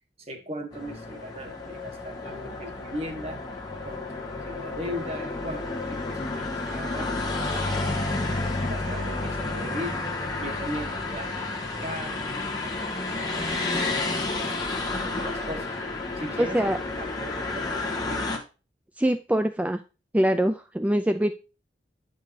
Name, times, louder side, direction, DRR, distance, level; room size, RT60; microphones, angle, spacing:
voice 1, 0.2-3.4 3.8-7.3 7.8-10.0 10.4-11.3 11.8-15.8 16.1-18.3, equal, 35° right, 4 dB, 1.5 m, -39 dB
sound 1, 0.7-18.4, left 2 dB, 20° left, 1.8 m, -31 dB
voice 2, 16.4-16.8 19.0-19.8 20.1-21.3, right 1 dB, 10° right, 9 dB, 0.4 m, -23 dB
10.0 x 5.3 x 4.1 m, 0.31 s
head